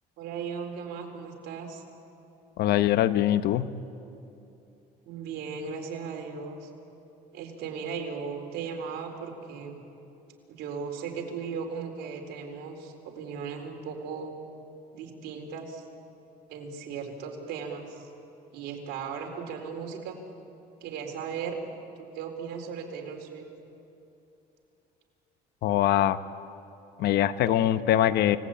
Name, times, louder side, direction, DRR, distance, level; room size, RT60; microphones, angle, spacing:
voice 1, 0.2-1.8 5.0-6.7 7.3-9.8 10.5-14.3 14.9-15.9 16.5-18.1 18.5-20.2 20.8-21.6 22.0-23.5, right 6 dB, 85° right, 2 dB, 4.0 m, -37 dB
voice 2, 2.6-3.7 25.6-26.2 27.0-28.4, left 12 dB, 75° left, 12 dB, 0.9 m, -23 dB
29.0 x 19.0 x 8.8 m, 2.8 s
cardioid pair, 110°, 17 cm